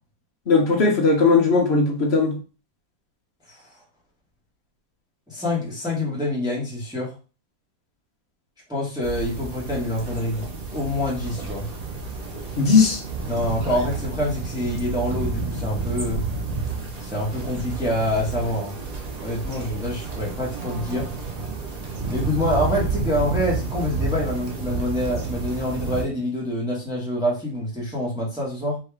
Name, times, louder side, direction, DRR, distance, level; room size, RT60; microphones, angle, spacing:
voice 1, 0.5-2.3 12.6-13.0, left 4 dB, 45° left, 1 dB, 1.0 m, -18 dB
voice 2, 5.3-7.1 8.7-11.7 13.3-16.2 17.0-18.7 19.2-21.1 22.1-28.8, left 1 dB, ahead, -5 dB, 1.2 m, -26 dB
sound 1, 9.0-26.0, right 4 dB, 45° right, 0.5 m, -30 dB
4.6 x 3.0 x 3.4 m, 0.34 s
omnidirectional pair, 2.0 m